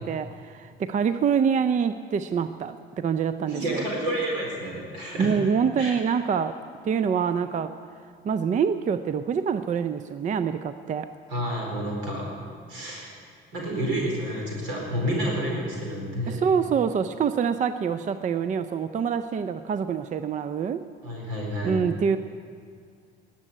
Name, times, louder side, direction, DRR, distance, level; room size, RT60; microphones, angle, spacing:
voice 1, 0.0-3.8 5.2-6.6 6.8-7.7 8.2-11.1 16.3-20.8 21.6-22.2, right 7 dB, 25° right, 12 dB, 0.5 m, -25 dB
voice 2, 3.5-5.3 5.8-5.9 11.3-12.3 12.7-13.1 13.5-16.4 21.0-21.8, equal, 70° right, -2 dB, 4.4 m, -29 dB
19.0 x 7.7 x 9.4 m, 2.2 s
figure-of-eight pair, 55°, 30 cm